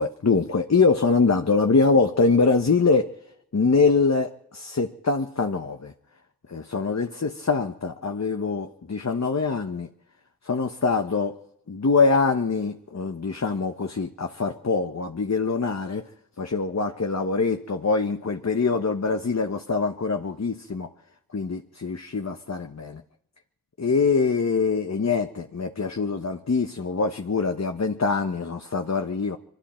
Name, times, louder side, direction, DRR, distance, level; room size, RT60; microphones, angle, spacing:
voice 1, 0.0-3.1 3.5-5.9 6.5-9.9 10.5-11.4 11.7-16.0 16.4-20.9 21.3-23.0 23.8-29.4, left 4 dB, 50° left, 1.1 m, -24 dB
24.0 x 13.5 x 4.4 m
wide cardioid pair, 50°, 34 cm